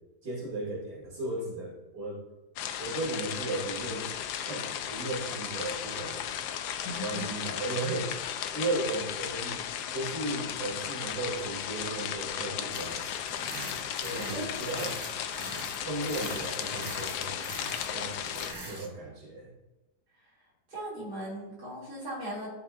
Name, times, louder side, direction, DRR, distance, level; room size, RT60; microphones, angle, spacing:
voice 1, 0.2-2.2 2.8-4.1 4.4-6.2 7.0-8.1 8.5-9.6 9.9-13.1 14.0-15.0 15.8-17.5 17.9-19.5, right 2 dB, 85° right, -6 dB, 3.4 m, -35 dB
sound 1, 2.6-18.5, left 9 dB, 75° left, 1.1 m, -35 dB
voice 2, 6.8-7.3 14.3-14.5 20.2-20.3 20.7-22.5, equal, 60° right, -7 dB, 3.5 m, -38 dB
sound 2, 12.7-18.9, right 1 dB, 20° right, 0.7 m, -43 dB
13.0 x 6.6 x 2.6 m, 1.0 s
omnidirectional pair, 1.9 m